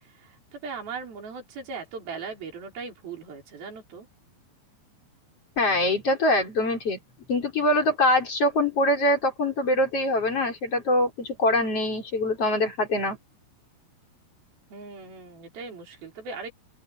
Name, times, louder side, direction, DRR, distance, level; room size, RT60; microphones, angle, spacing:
voice 1, 0.0-4.1 14.7-16.5, right 5 dB, 60° right, 7.5 m, -39 dB
voice 2, 5.6-7.0 7.3-13.2, left 1 dB, 35° left, 6.0 m, -23 dB
open air
omnidirectional pair, 4.9 m